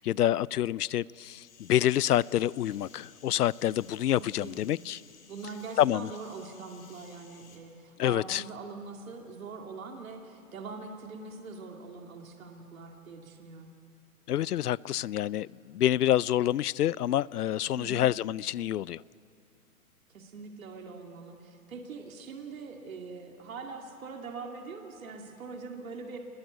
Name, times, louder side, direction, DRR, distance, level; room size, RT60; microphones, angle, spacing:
voice 1, 0.0-5.0 5.8-6.1 8.0-8.4 14.3-19.0, left 12 dB, 85° left, 24 dB, 0.6 m, -27 dB
sound 1, 1.4-7.6, left 6 dB, 50° left, 4.3 m, -57 dB
voice 2, 4.4-4.7 5.3-13.7 17.8-18.0 20.1-26.2, right 4 dB, 65° right, 2 dB, 2.5 m, -43 dB
27.5 x 21.0 x 8.1 m, 2.4 s
hypercardioid pair, 155°, 45 cm